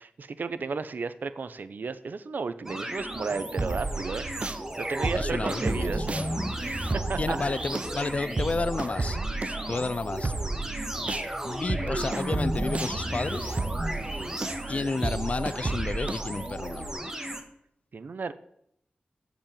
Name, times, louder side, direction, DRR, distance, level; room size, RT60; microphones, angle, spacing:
voice 1, 0.0-4.2 4.8-6.1 6.6-7.4 9.7-9.8 17.9-18.3, right 4 dB, 70° right, 13 dB, 0.8 m, -34 dB
sound 1, 2.7-17.4, right 1 dB, 15° right, 1.6 m, -34 dB
sound 2, 3.6-4.6 5.0-11.3 11.7-16.9, right 3 dB, 40° right, 0.9 m, -33 dB
voice 2, 5.1-6.5 7.2-9.2 9.7-10.3 11.4-13.6 14.7-16.9, left 3 dB, 45° left, 15 dB, 0.5 m, -31 dB
15.0 x 5.3 x 9.0 m, 0.73 s
wide cardioid pair, 105°, 3 cm